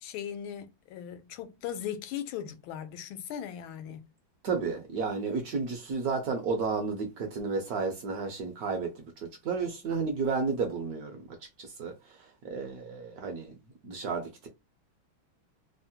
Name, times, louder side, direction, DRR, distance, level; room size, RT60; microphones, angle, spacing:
voice 1, 0.0-4.0, left 9 dB, 85° left, 1.4 m, -38 dB
voice 2, 4.4-13.6 13.8-14.5, right 4 dB, 65° right, 1.0 m, -32 dB
3.5 x 2.0 x 2.7 m
omnidirectional pair, 2.2 m